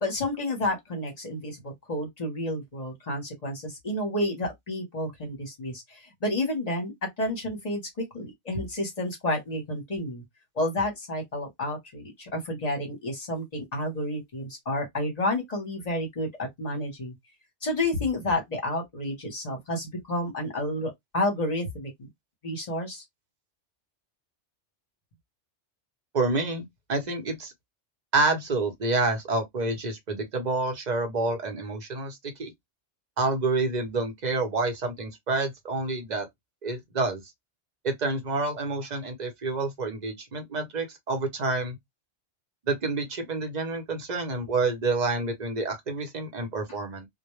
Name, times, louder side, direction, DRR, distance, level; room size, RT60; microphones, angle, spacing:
voice 1, 0.0-6.9 7.2-10.2 10.5-17.1 17.6-22.1 22.4-23.0, left 1 dB, 40° left, 0.9 m, -30 dB
voice 2, 26.1-27.5 28.1-32.5 33.2-36.3 36.6-37.2 37.8-41.8 42.7-47.1, right 3 dB, 45° right, 0.7 m, -28 dB
2.2 x 2.1 x 3.0 m
omnidirectional pair, 1.2 m